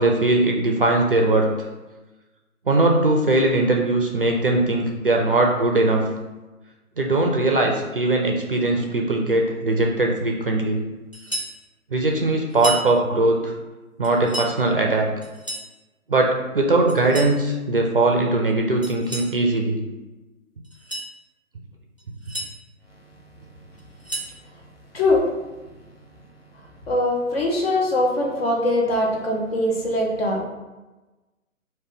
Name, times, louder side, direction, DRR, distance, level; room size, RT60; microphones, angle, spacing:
voice 1, 0.0-1.5 2.7-6.0 7.0-10.8 11.9-13.5 14.0-15.1 16.1-19.8, right 2 dB, 40° right, 1 dB, 0.4 m, -20 dB
sound 1, 11.1-11.6 12.5-12.9 14.0-14.5 15.2-15.7 16.9-17.4 18.8-19.3 20.6-21.1 22.0-22.5 23.8-24.4, right 1 dB, 25° left, 0.4 m, -32 dB
voice 2, 26.9-30.4, left 1 dB, 45° left, -1 dB, 1.0 m, -22 dB
4.8 x 2.6 x 3.7 m, 1.1 s
figure-of-eight pair, 140°, 42 cm